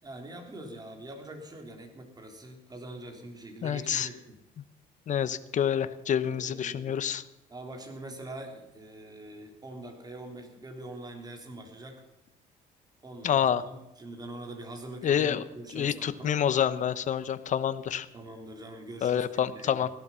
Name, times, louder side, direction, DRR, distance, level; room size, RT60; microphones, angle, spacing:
voice 1, 0.0-4.4 6.3-7.0 7.5-12.0 13.0-16.4 18.1-19.8, right 1 dB, 25° right, 4 dB, 3.6 m, -44 dB
voice 2, 3.6-4.1 5.1-7.2 13.2-13.6 15.0-15.4 15.7-18.1 19.0-19.9, left 9 dB, 45° left, 13 dB, 1.0 m, -27 dB
16.5 x 12.0 x 5.7 m, 0.97 s
cardioid pair, 110°, 17 cm